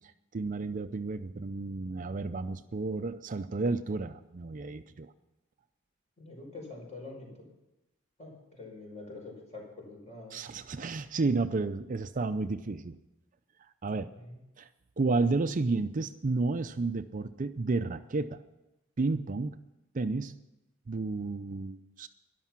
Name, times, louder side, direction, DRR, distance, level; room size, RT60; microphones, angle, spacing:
voice 1, 0.3-5.1 10.3-12.9 13.8-14.1 14.6-14.7 15.0-18.4 19.0-19.6 19.9-20.4 20.9-22.1, right 3 dB, 40° right, 10 dB, 0.5 m, -31 dB
voice 2, 6.2-7.5 8.2-10.3 13.9-14.4, left 2 dB, 35° left, -1 dB, 5.5 m, -46 dB
13.0 x 11.0 x 6.0 m, 0.95 s
head